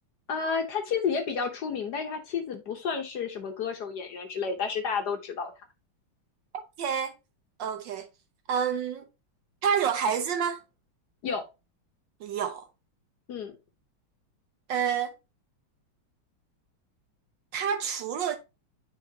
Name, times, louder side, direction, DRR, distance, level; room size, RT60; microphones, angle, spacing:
voice 1, 0.3-5.5 11.2-11.4 13.3-13.5, left 6 dB, 60° left, 1.3 m, -31 dB
voice 2, 6.8-7.2 7.6-8.1 8.5-9.1 9.6-10.6 12.2-12.7 14.7-15.2 17.5-18.4, right 7 dB, 70° right, 1.2 m, -28 dB
8.9 x 4.0 x 2.7 m
omnidirectional pair, 2.4 m